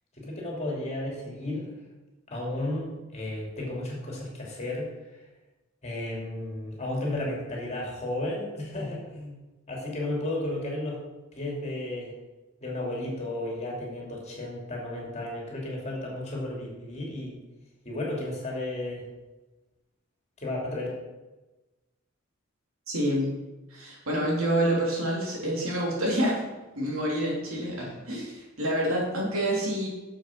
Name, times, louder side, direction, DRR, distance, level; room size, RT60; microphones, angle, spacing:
voice 1, 0.2-1.7 2.3-4.9 5.8-9.4 9.7-11.0 11.4-12.1 12.6-17.4 17.8-19.1 20.4-20.9, left 1 dB, 30° left, -2 dB, 3.0 m, -33 dB
voice 2, 22.9-23.3 23.7-26.4 26.7-29.9, right 1 dB, 80° right, -3 dB, 3.4 m, -27 dB
7.8 x 7.2 x 6.1 m, 1.1 s
head